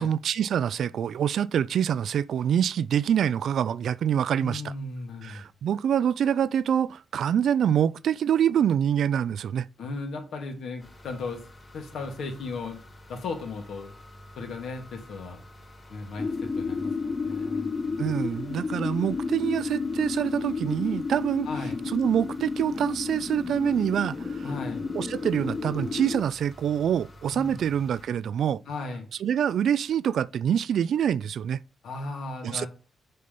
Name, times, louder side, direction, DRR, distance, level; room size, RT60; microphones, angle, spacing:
voice 1, 0.0-4.7 5.2-9.7 18.0-21.5 21.9-24.5 24.9-28.6 29.2-31.6 32.4-32.7, right 9 dB, 70° right, 0.3 m, -25 dB
voice 2, 4.4-5.4 9.8-11.4 11.7-12.8 13.1-14.0 14.4-15.4 15.9-18.1 21.4-21.8 24.4-24.9 27.3-27.6 28.7-29.1 31.8-32.7, left 3 dB, 75° left, 2.2 m, -36 dB
sound 1, 10.8-28.1, left 1 dB, 35° left, 2.5 m, -50 dB
sound 2, 16.2-26.2, left 4 dB, 50° left, 2.4 m, -32 dB
6.6 x 4.1 x 5.2 m
cardioid pair, 70°, 0 cm